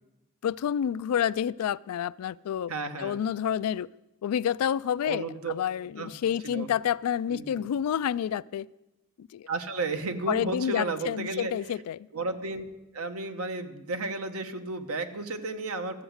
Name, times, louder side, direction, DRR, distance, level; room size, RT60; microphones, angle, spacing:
voice 1, 0.4-2.7 3.0-3.9 4.2-8.7 9.2-9.5 10.3-12.0, left 9 dB, 85° left, 17 dB, 0.3 m, -29 dB
voice 2, 2.7-3.2 5.0-5.5 6.0-6.1 6.4-6.7 7.3-7.6 9.5-11.5 12.1-12.6 12.9-16.0, right 3 dB, 75° right, 8 dB, 1.0 m, -33 dB
13.0 x 8.0 x 6.4 m, 0.97 s
head